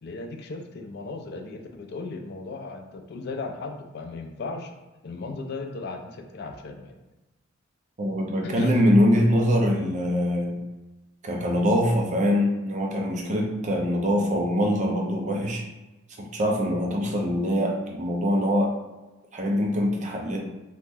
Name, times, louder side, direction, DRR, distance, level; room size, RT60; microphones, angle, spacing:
voice 1, 0.0-4.7 5.0-7.0 8.4-8.7, left 3 dB, 50° left, 5 dB, 0.4 m, -36 dB
voice 2, 8.0-10.6 11.2-15.6 16.2-18.7 19.3-20.4, equal, 35° right, 0 dB, 0.5 m, -23 dB
2.8 x 2.1 x 3.3 m, 1.1 s
head